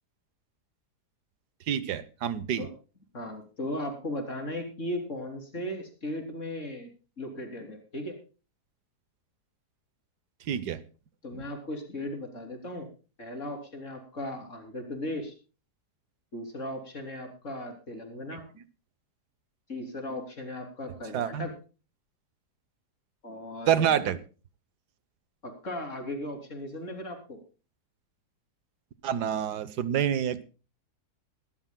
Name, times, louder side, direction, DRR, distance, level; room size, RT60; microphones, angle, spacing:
voice 1, 1.7-2.7 10.5-10.8 21.1-21.5 23.7-24.2 29.0-30.4, right 9 dB, 80° right, 15 dB, 1.5 m, -27 dB
voice 2, 3.1-6.9 7.2-8.2 11.2-12.9 13.2-15.3 16.3-18.5 19.7-21.5 23.2-24.1 25.4-27.4, left 1 dB, 45° left, 4 dB, 3.6 m, -37 dB
22.0 x 13.5 x 2.2 m, 0.34 s
omnidirectional pair, 1.7 m